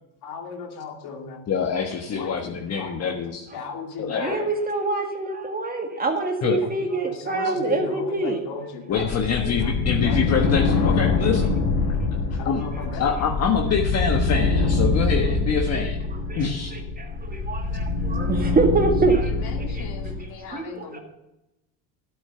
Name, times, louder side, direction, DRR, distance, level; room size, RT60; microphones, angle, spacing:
voice 1, 0.2-1.4 2.1-3.1 3.5-4.5 6.6-6.7 7.1-10.3 10.7-11.2 12.4-13.1 19.2-21.0, left 5 dB, 60° left, 3 dB, 2.5 m, -36 dB
voice 2, 1.5-3.5 4.0-4.5 6.4-6.6 8.9-11.5 12.4-12.6 13.0-16.0 16.4-16.7, left 6 dB, 35° left, 2 dB, 1.3 m, -25 dB
voice 3, 4.2-8.4 16.3-19.3 19.7-20.1 20.5-21.0, right 3 dB, 20° right, 4 dB, 1.8 m, -25 dB
sound 1, 8.9-20.2, left 3 dB, 80° left, 4.1 m, -24 dB
12.0 x 8.5 x 5.7 m, 0.93 s
supercardioid pair, 110°, 43 cm